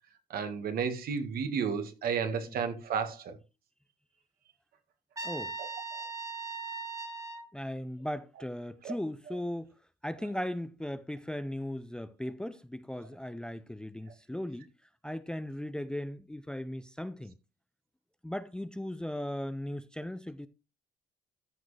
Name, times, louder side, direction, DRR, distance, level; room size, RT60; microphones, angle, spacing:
voice 1, 0.3-3.4 5.9-6.0 8.8-8.9, right 6 dB, 60° right, 1.8 m, -32 dB
voice 2, 5.2-5.6 7.5-9.7 10.0-14.7 15.0-17.4 18.2-20.5, left 1 dB, 5° left, 0.6 m, -37 dB
Trumpet, 5.2-7.5, right 4 dB, 20° right, 1.8 m, -39 dB
13.5 x 6.2 x 3.4 m
cardioid pair, 110°, 17 cm